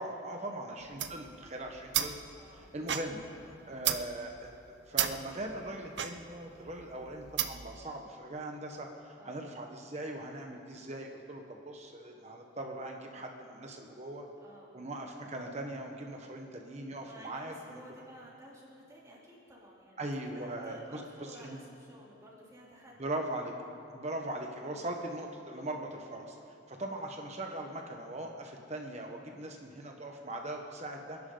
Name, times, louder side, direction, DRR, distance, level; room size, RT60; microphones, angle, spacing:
voice 1, 0.0-2.2 2.5-3.2 3.7-14.2 14.7-17.8 20.0-21.6 23.0-23.5 23.9-26.4 26.7-31.2, right 1 dB, 40° right, 2 dB, 1.2 m, -40 dB
sound 1, 0.8-7.8, right 10 dB, 70° right, 0.7 m, -36 dB
voice 2, 2.3-2.7 3.3-3.6 9.2-9.4 14.4-14.7 17.0-20.1 20.3-22.9 24.7-24.9 29.3-29.5, equal, 20° right, -5 dB, 3.4 m, -54 dB
27.5 x 11.0 x 3.9 m, 2.6 s
head